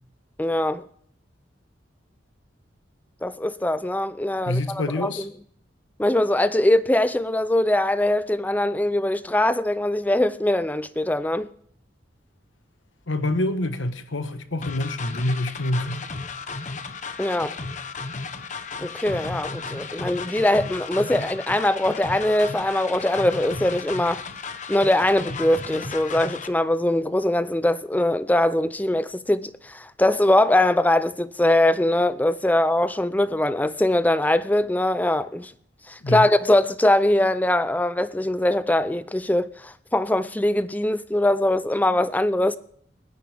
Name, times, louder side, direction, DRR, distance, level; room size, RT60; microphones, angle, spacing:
voice 1, 0.4-0.9 3.2-5.3 6.0-11.5 17.2-17.6 18.8-24.2 24.7-35.5 35.9-42.6, left 1 dB, 10° left, 0.5 m, -22 dB
voice 2, 4.5-5.3 13.1-16.0 36.0-36.3, left 1 dB, 85° left, 1.3 m, -26 dB
sound 1, 14.6-26.5, left 4 dB, 40° left, 1.0 m, -34 dB
29.0 x 9.7 x 3.5 m
head